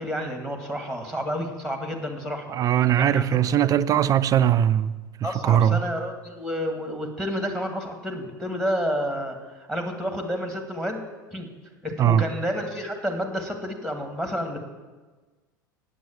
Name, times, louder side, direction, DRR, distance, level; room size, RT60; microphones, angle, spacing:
voice 1, 0.0-2.5 3.0-3.3 3.6-3.7 5.2-9.4 9.7-11.0 11.3-11.5 11.8-14.6, equal, 5° left, 1.9 m, -30 dB
voice 2, 2.5-4.9 5.2-5.8 12.0-12.2, right 10 dB, 30° right, 0.5 m, -20 dB
9.2 x 8.2 x 7.3 m
figure-of-eight pair, 80°, 11 cm